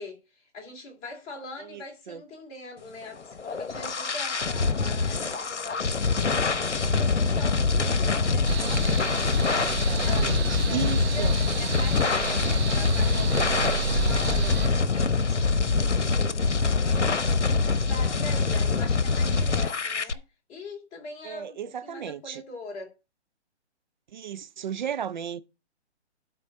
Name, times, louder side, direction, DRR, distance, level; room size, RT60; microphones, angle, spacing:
voice 1, 0.0-9.3 9.6-14.6 14.9-17.4 17.8-20.2 20.5-23.0, left 3 dB, 20° left, 2.9 m, -42 dB
voice 2, 1.6-2.2 9.6-11.3 21.2-22.4 24.1-25.4, right 8 dB, 45° right, 0.6 m, -35 dB
sound 1, 3.2-20.1, left 4 dB, 90° left, 0.9 m, -25 dB
sound 2, 8.4-14.7, right 5 dB, 65° right, 1.9 m, -31 dB
12.0 x 4.1 x 5.6 m
figure-of-eight pair, 140°, 34 cm